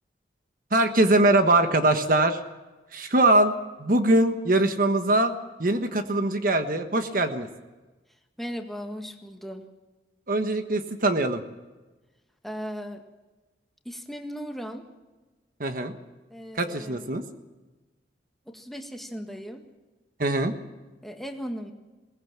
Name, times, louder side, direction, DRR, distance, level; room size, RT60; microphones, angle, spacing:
voice 1, 0.7-2.4 2.9-3.5 3.8-5.3 5.6-7.5 10.3-11.4 15.6-15.9 16.5-17.2 20.2-20.5, right 2 dB, 50° right, 7 dB, 1.3 m, -22 dB
voice 2, 8.4-9.7 12.4-13.0 13.8-14.8 16.3-17.2 18.5-19.6 21.0-21.7, equal, ahead, 3 dB, 1.7 m, -37 dB
21.5 x 18.5 x 7.4 m, 1.2 s
head